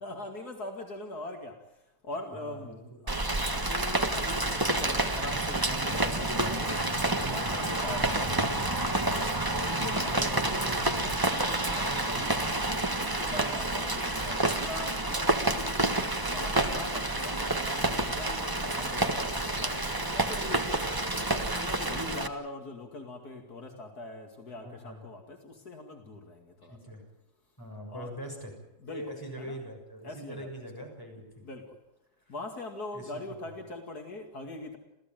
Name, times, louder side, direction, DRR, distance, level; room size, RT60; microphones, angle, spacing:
voice 1, 0.0-1.6 2.0-3.2 3.5-6.8 7.2-8.5 9.5-12.5 13.0-15.8 16.3-20.7 21.1-26.8 27.9-28.1 28.8-29.0 29.4-29.6 30.0-30.6 31.4-31.7 32.3-34.8, left 2 dB, 70° left, 4 dB, 2.9 m, -42 dB
voice 2, 2.3-3.0 9.9-10.9 24.6-25.1 26.6-27.0 27.6-28.5 28.9-31.3 32.3-32.4 32.9-33.2 33.5-33.6, right 1 dB, 10° left, 1 dB, 6.6 m, -43 dB
Rain, 3.1-22.3, right 2 dB, 15° right, 1.5 m, -29 dB
29.5 x 15.0 x 9.2 m, 0.90 s
omnidirectional pair, 1.7 m